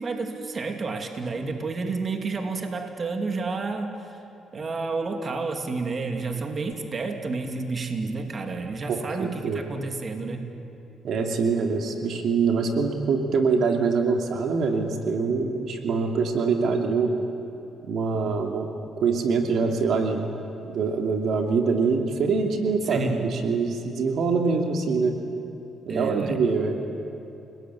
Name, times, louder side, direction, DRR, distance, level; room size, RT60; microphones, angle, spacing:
voice 1, 0.0-4.0 4.5-10.5 22.8-23.4 25.9-26.4, right 3 dB, 40° right, 4 dB, 2.8 m, -30 dB
voice 2, 8.9-9.6 11.0-17.1 17.9-18.7 19.0-20.3 20.6-25.2 25.9-26.8, right 4 dB, 70° right, 3 dB, 2.8 m, -24 dB
29.5 x 20.0 x 9.7 m, 2.9 s
cardioid pair, 90°, 0 cm